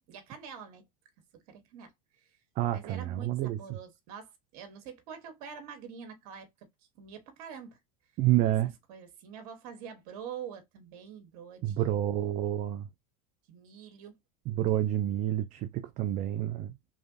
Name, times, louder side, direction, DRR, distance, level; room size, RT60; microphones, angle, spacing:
voice 1, 0.1-0.8 1.3-1.9 2.7-6.5 7.0-7.8 8.9-12.0 13.5-14.1, right 7 dB, 65° right, 1.1 m, -45 dB
voice 2, 2.6-3.8 8.2-8.7 11.6-12.9 14.5-16.7, right 13 dB, 40° right, 0.4 m, -29 dB
3.1 x 2.4 x 2.4 m
hypercardioid pair, 90°, 19 cm